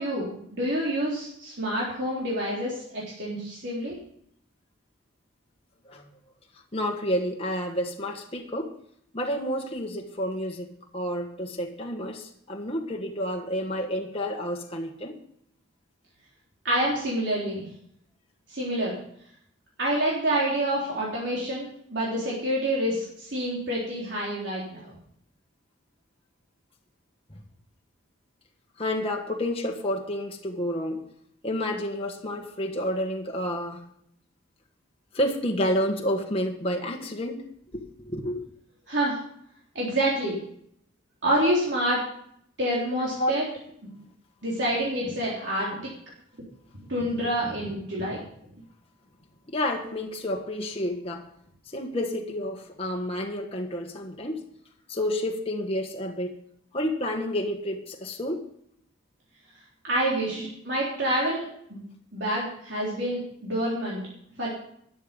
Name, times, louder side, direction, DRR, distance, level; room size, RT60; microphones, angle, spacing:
voice 1, 0.0-4.0 16.6-17.7 18.5-19.0 19.8-24.8 38.9-39.2 39.8-40.4 41.2-42.0 42.6-43.4 44.4-45.8 46.9-48.2 59.8-61.4 61.7-61.8 62.1-64.0 64.4-64.5, right 1 dB, 60° right, -6 dB, 3.8 m, -27 dB
voice 2, 6.7-8.7 9.1-15.2 27.3-27.4 28.8-31.0 31.4-33.8 35.1-37.4 37.7-38.4 43.2-43.3 49.5-51.3 51.7-54.4 54.9-56.4 56.7-58.5 60.2-60.5, left 1 dB, 30° left, 1 dB, 1.5 m, -30 dB
13.0 x 10.5 x 5.4 m, 0.68 s
head